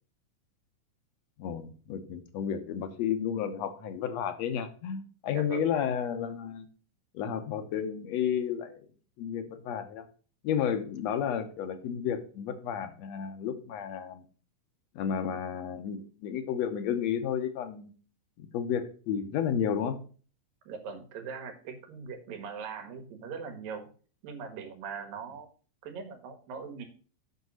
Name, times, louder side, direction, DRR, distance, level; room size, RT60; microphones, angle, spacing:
voice 1, 1.4-6.7 7.1-8.9 9.2-10.1 10.4-14.2 15.0-17.9 18.4-20.0, left 8 dB, 65° left, 9 dB, 1.9 m, -32 dB
voice 2, 5.3-5.7 20.7-23.9 24.2-25.5 25.8-26.9, right 5 dB, 85° right, 6 dB, 3.4 m, -41 dB
8.1 x 6.2 x 6.3 m, 0.39 s
omnidirectional pair, 3.9 m